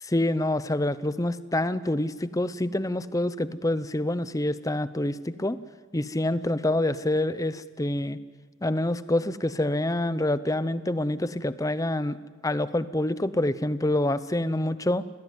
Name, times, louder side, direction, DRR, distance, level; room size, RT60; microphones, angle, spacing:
voice 1, 0.1-5.6 5.9-8.2 8.6-12.2 12.4-15.1, left 1 dB, 15° left, 14 dB, 0.7 m, -26 dB
26.5 x 18.5 x 9.5 m, 1.5 s
head